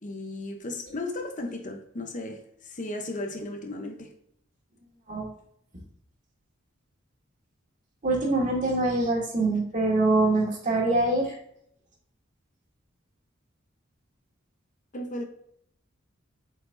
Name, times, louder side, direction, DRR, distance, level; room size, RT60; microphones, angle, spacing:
voice 1, 0.0-4.1 14.9-15.2, left 2 dB, 40° left, 0.8 m, -35 dB
voice 2, 8.0-11.4, right 2 dB, 40° right, 1.9 m, -24 dB
8.2 x 4.7 x 2.6 m
head